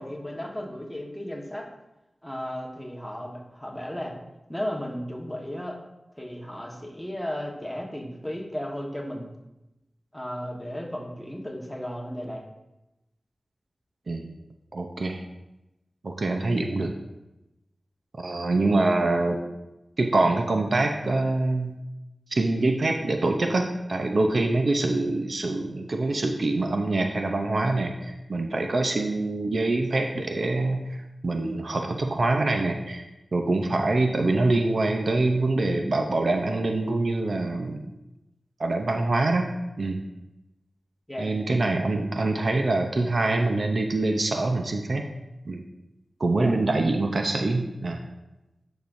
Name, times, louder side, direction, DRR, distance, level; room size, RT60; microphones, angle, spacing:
voice 1, 0.0-1.7 2.2-4.2 4.5-5.8 6.2-9.4 10.1-12.4 41.1-41.3 46.4-46.5, equal, 5° left, -1 dB, 1.4 m, -34 dB
voice 2, 14.7-15.2 16.0-16.9 18.2-19.4 20.0-21.7 22.3-31.0 31.2-33.1 33.3-37.8 38.6-39.5 39.8-40.0 41.2-45.1 45.5-45.6 46.2-48.0, right 2 dB, 60° right, 4 dB, 0.7 m, -25 dB
10.0 x 6.1 x 2.6 m, 0.96 s
wide cardioid pair, 75°, 0 cm